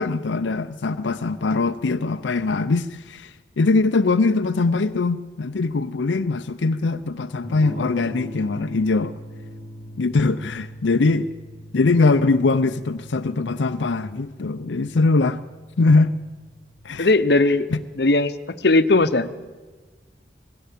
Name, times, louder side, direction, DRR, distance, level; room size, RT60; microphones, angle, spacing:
voice 1, 0.0-9.1 10.0-11.3 11.7-15.4 15.8-16.2 16.8-17.1 17.7-17.8, left 3 dB, 85° left, 0.6 m, -21 dB
Electric guitar / Strum, 7.4-17.2, equal, 5° right, 7.4 m, -41 dB
voice 2, 17.0-17.7 18.0-18.3 18.6-19.4, left 2 dB, 60° left, 0.9 m, -18 dB
19.5 x 16.5 x 8.4 m
head